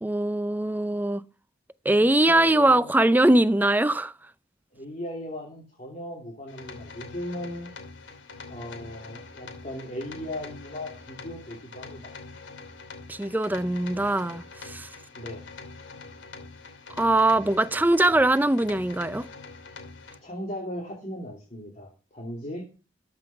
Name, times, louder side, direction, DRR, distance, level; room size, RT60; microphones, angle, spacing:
voice 1, 0.0-1.2 1.9-4.1 13.1-14.9 17.0-19.3, right 1 dB, 10° right, 0.5 m, -22 dB
voice 2, 2.0-2.9 4.7-7.7 8.5-12.1 15.1-15.5 20.2-22.6, left 1 dB, 35° left, 2.9 m, -37 dB
sound 1, 6.5-20.2, left 4 dB, 85° left, 2.9 m, -44 dB
14.0 x 5.8 x 5.9 m
head